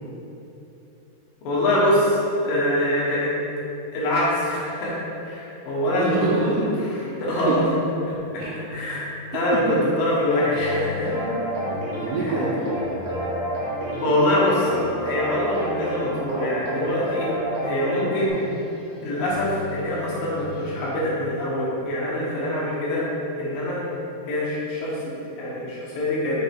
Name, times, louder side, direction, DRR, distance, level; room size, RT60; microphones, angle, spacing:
voice 1, 1.4-2.2 2.4-3.3 3.9-6.1 6.4-6.6 7.2-7.6 8.7-9.6 10.0-11.2 12.2-12.3 14.0-14.7 15.0-17.3 17.6-18.4 19.0-23.1 23.4-23.8 24.2-26.4, left 1 dB, 70° left, -6 dB, 2.7 m, -24 dB
voice 2, 5.9-6.7 7.5-7.6 8.4-8.5 9.7-9.8 11.1-13.1, right 3 dB, 85° right, -3 dB, 2.6 m, -27 dB
sound 1, 8.1-21.0, left 3 dB, 85° left, 2.9 m, -41 dB
sound 2, 10.3-18.3, equal, 65° right, 1.5 m, -29 dB
sound 3, 14.1-19.2, right 4 dB, 50° left, 2.0 m, -41 dB
6.4 x 5.3 x 3.5 m, 3.0 s
omnidirectional pair, 4.5 m